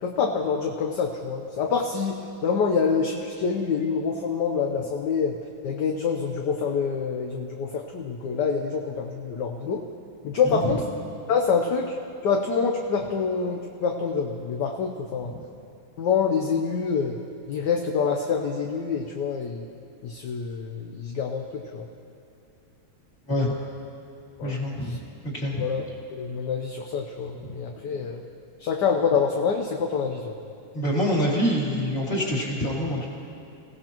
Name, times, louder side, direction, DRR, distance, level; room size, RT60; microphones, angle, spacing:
voice 1, 0.0-5.4 5.6-9.8 10.2-10.9 11.3-11.9 12.2-15.3 16.0-17.2 17.5-19.6 20.0-21.9 24.4-24.6 24.8-25.0 25.6-25.8 26.1-28.2 28.6-30.3, left 5 dB, 60° left, 2 dB, 1.3 m, -26 dB
voice 2, 24.4-25.0 25.3-25.7 27.4-27.5 30.7-33.1, equal, 25° left, -5 dB, 3.1 m, -26 dB
27.5 x 16.5 x 3.0 m, 2.5 s
omnidirectional pair, 2.4 m